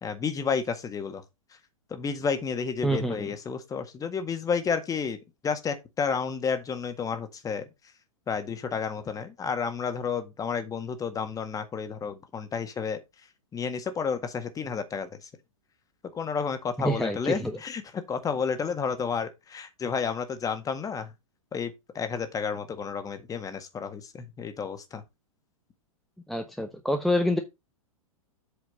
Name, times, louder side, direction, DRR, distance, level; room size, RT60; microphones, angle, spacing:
voice 1, 0.0-1.2 1.9-5.2 5.4-7.6 8.3-13.0 13.5-15.3 16.1-21.1 21.5-25.0, left 6 dB, 20° left, 1.7 m, -31 dB
voice 2, 2.8-3.3 16.8-17.6 26.3-27.4, equal, ahead, 1.0 m, -27 dB
8.2 x 5.0 x 5.1 m
hypercardioid pair, 110°, 18 cm